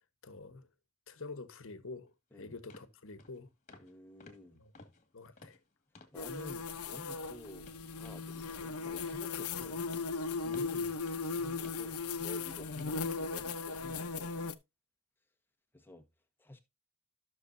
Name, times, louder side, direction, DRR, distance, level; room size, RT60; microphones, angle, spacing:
voice 1, 0.2-0.7 1.1-2.1 2.4-3.5 4.5-4.7 5.1-5.6 10.4-11.0, left 3 dB, 65° left, 1.3 m, -47 dB
sound 1, 2.1-2.2 2.7-2.9 3.2-3.4 3.7-3.9 4.2-6.2 6.5-6.8 7.1-12.4 12.8-13.0 13.4-13.6 14.0-14.1, left 3 dB, 35° left, 2.0 m, -58 dB
voice 2, 3.8-4.6 6.1-9.8 11.3-14.3 15.7-16.0 16.4-16.6, left 1 dB, 10° left, 1.4 m, -51 dB
sound 2, 6.1-14.5, left 4 dB, 85° left, 0.9 m, -37 dB
13.5 x 6.5 x 2.7 m
head